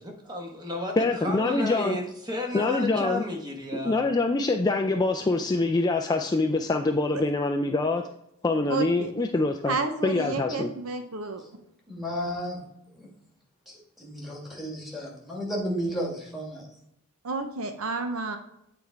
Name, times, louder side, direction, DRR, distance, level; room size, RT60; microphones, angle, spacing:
voice 1, 0.3-1.0 1.2-4.0, left 2 dB, 20° right, 2 dB, 1.1 m, -32 dB
voice 2, 1.0-2.0 2.5-3.2 3.7-8.1 8.4-9.8 10.0-10.7, left 3 dB, 20° left, 3 dB, 0.3 m, -25 dB
voice 3, 8.7-9.1 9.6-11.4 17.2-18.4, right 4 dB, 70° right, 7 dB, 0.8 m, -31 dB
voice 4, 11.9-12.6 12.9-13.1 13.7-16.7, equal, ahead, -3 dB, 1.7 m, -33 dB
8.6 x 3.4 x 4.6 m, 0.81 s
head